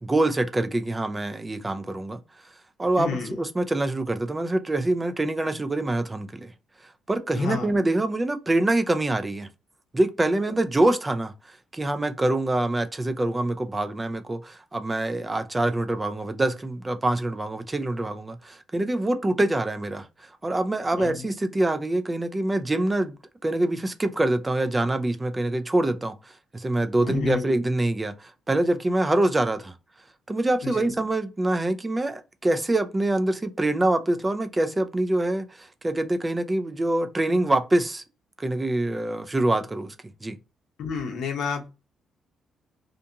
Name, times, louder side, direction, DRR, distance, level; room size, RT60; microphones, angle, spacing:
voice 1, 0.0-2.2 2.8-6.5 7.1-9.5 9.9-11.3 11.7-20.1 20.4-23.2 23.4-29.7 30.3-38.0 38.4-39.9 40.2-40.4, right 2 dB, 20° right, 0.5 m, -25 dB
voice 2, 3.0-3.4 7.4-7.8 21.0-21.2 27.0-27.5 30.6-30.9 40.8-41.7, left 6 dB, 75° left, 0.8 m, -30 dB
2.5 x 2.3 x 2.8 m
cardioid pair, 90°, 0 cm